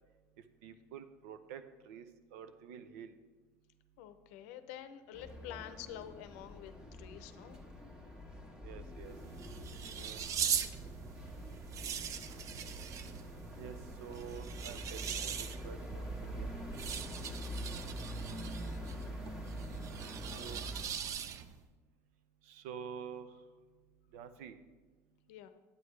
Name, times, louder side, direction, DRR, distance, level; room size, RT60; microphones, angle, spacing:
voice 1, 0.6-2.1 2.3-3.1 8.6-9.1 9.9-10.4 13.6-16.1 16.4-16.5 16.9-17.0 20.0-20.6 22.5-23.3 24.1-24.6, right 7 dB, 85° right, 10 dB, 0.6 m, -48 dB
voice 2, 4.0-7.6 25.3-25.5, left 11 dB, 80° left, 11 dB, 0.6 m, -48 dB
sound 1, 5.1-20.8, equal, 10° right, 1.4 m, -45 dB
sound 2, 8.9-21.6, right 8 dB, 45° right, 0.5 m, -41 dB
9.3 x 8.4 x 3.3 m, 1.3 s
supercardioid pair, 115°, 8 cm